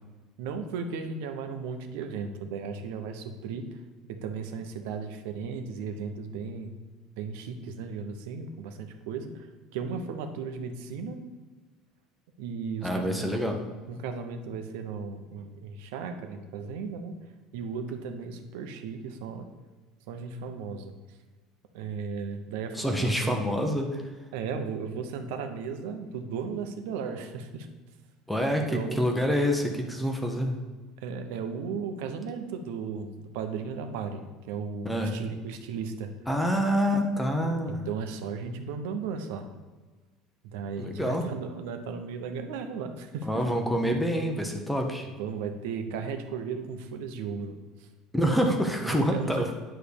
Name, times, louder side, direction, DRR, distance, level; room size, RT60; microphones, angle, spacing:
voice 1, 0.4-3.7 4.1-6.8 7.2-11.2 12.4-13.3 13.9-17.2 17.5-19.5 20.1-21.2 21.7-23.4 24.3-27.7 28.7-29.1 31.0-36.1 37.7-39.5 40.4-43.4 45.2-47.9 48.8-49.5, right 5 dB, 85° right, 6 dB, 0.9 m, -35 dB
voice 2, 12.8-13.6 22.7-24.0 28.3-30.6 34.8-35.1 36.3-37.8 40.8-41.3 43.2-45.1 48.1-49.5, equal, 5° left, 3 dB, 0.8 m, -27 dB
9.2 x 3.3 x 6.8 m, 1.3 s
cardioid pair, 145°, 0 cm